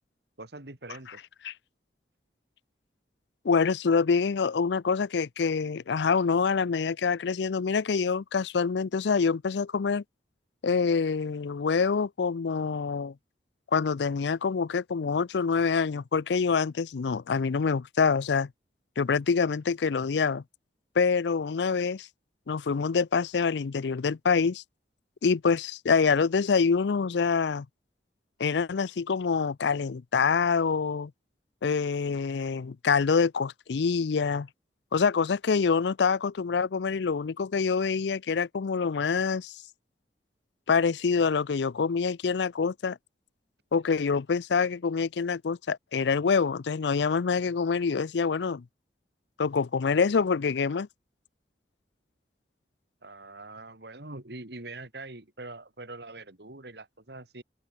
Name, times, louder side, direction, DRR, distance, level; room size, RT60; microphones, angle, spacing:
voice 1, 0.4-1.2 53.0-57.4, right 2 dB, 65° right, 2.6 m, -43 dB
voice 2, 3.4-10.0 10.6-13.1 13.7-18.5 19.0-20.4 21.0-22.1 22.5-24.6 25.2-27.7 28.4-31.1 31.6-34.5 34.9-39.5 40.7-43.0 43.7-48.6 49.4-50.9, left 5 dB, 75° left, 0.5 m, -26 dB
open air
head